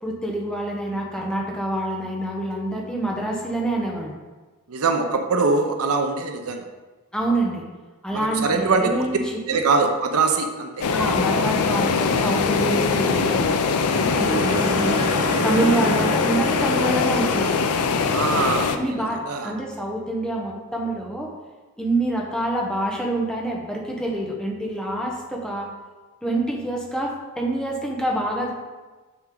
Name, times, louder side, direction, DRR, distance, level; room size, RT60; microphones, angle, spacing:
voice 1, 0.0-4.1 7.1-7.6 8.0-9.2 9.5-9.6 10.9-13.4 14.2-15.0 15.4-17.7 18.7-21.3 21.8-25.7 26.2-28.5, right 1 dB, 5° left, -2 dB, 1.1 m, -26 dB
voice 2, 4.7-6.6 8.1-9.1 9.5-10.8 18.0-18.8 19.3-19.5, right 4 dB, 75° right, 5 dB, 0.7 m, -22 dB
sound 1, 10.8-18.8, left 5 dB, 75° left, 0.5 m, -22 dB
sound 2, 13.9-18.1, right 2 dB, 20° right, 0.8 m, -29 dB
6.3 x 6.0 x 3.9 m, 1.3 s
head